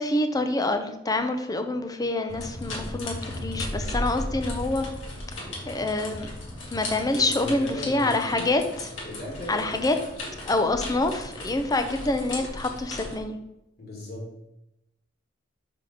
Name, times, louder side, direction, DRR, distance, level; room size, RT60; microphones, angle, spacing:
voice 1, 0.0-4.9 5.7-6.3 6.7-8.9 9.5-10.0 10.5-13.4, left 2 dB, 20° left, 7 dB, 0.6 m, -26 dB
sound 1, 2.3-13.2, left 1 dB, 85° left, 2.2 m, -36 dB
voice 2, 7.1-8.5 9.0-9.9 13.8-14.5, left 1 dB, 55° left, -2 dB, 1.8 m, -37 dB
5.7 x 5.1 x 4.9 m, 0.88 s
head